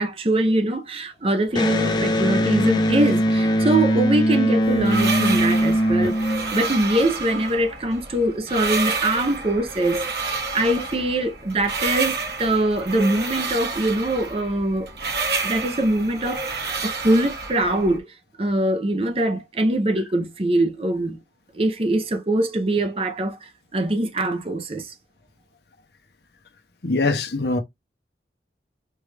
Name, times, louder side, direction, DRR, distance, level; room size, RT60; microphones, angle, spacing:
voice 1, 0.0-14.9 15.4-18.1 18.4-21.2 21.5-24.9, right 1 dB, 35° right, 0.7 m, -23 dB
Electric guitar, 1.5-7.0, equal, 25° left, 0.6 m, -21 dB
sound 1, 4.6-18.0, right 4 dB, 65° right, 1.4 m, -29 dB
voice 2, 26.8-27.6, left 3 dB, 70° left, 0.9 m, -22 dB
4.6 x 2.5 x 3.3 m
head